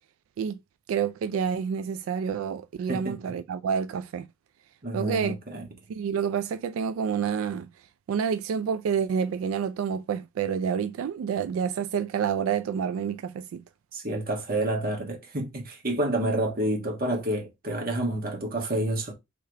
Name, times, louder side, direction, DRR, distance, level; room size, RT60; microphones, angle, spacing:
voice 1, 0.9-4.3 4.9-5.4 5.9-7.7 8.1-13.6, right 7 dB, 90° right, 0.3 m, -28 dB
voice 2, 4.8-5.6 13.9-19.1, right 1 dB, 45° right, 1.5 m, -29 dB
3.6 x 3.3 x 4.5 m
head